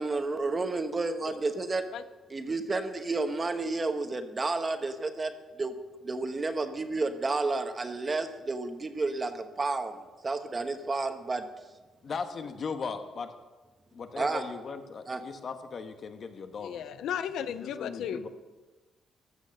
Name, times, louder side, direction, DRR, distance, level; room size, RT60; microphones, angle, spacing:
voice 1, 0.0-1.8 2.3-5.3 5.6-5.7 6.0-11.4 14.2-14.4 15.1-15.2, right 3 dB, 30° right, 8 dB, 1.2 m, -31 dB
voice 2, 12.0-13.3 13.9-16.9 17.4-18.3, left 5 dB, 50° left, 8 dB, 1.2 m, -38 dB
voice 3, 16.6-18.3, left 9 dB, 80° left, 12 dB, 0.5 m, -34 dB
14.0 x 6.5 x 6.6 m, 1.2 s
cardioid pair, 85°, 0 cm